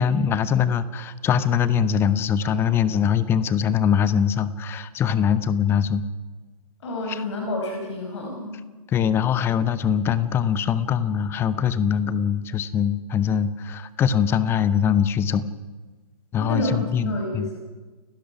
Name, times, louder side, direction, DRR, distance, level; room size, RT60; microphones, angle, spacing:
voice 1, 0.0-6.0 7.1-7.2 8.9-15.4 16.3-17.5, left 8 dB, 10° left, 16 dB, 0.7 m, -22 dB
voice 2, 6.8-8.5 16.4-16.7 17.0-17.6, left 1 dB, 45° left, 2 dB, 5.2 m, -29 dB
29.5 x 16.5 x 5.8 m, 1.3 s
figure-of-eight pair, 130°, 20 cm